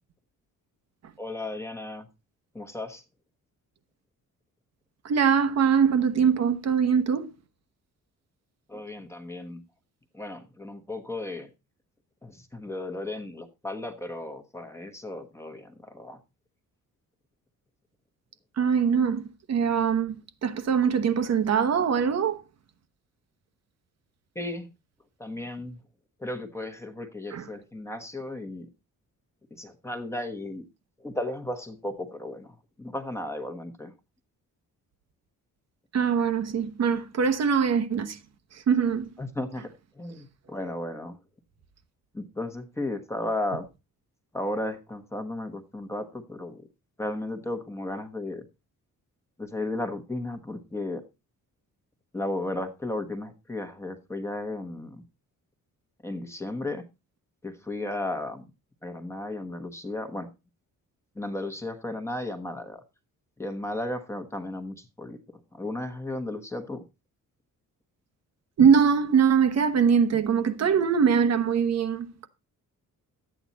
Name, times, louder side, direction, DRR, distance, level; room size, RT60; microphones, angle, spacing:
voice 1, 1.2-2.1 2.5-3.0 8.7-9.6 10.1-11.5 12.2-16.2 24.3-24.7 25.2-25.8 26.2-28.7 29.5-30.6 31.0-33.9 39.2-41.2 42.1-43.7 44.3-46.6 47.0-48.5 49.4-51.0 52.1-55.0 56.0-56.8 57.4-58.5 58.8-60.3 61.1-62.8 63.4-65.2 65.5-66.8, left 1 dB, 10° left, 1.2 m, -34 dB
voice 2, 5.0-7.3 18.6-22.4 27.3-27.4 35.9-38.2 38.7-39.1 68.6-72.3, right 7 dB, 50° right, 1.1 m, -22 dB
12.0 x 8.9 x 4.1 m
wide cardioid pair, 175°, 33 cm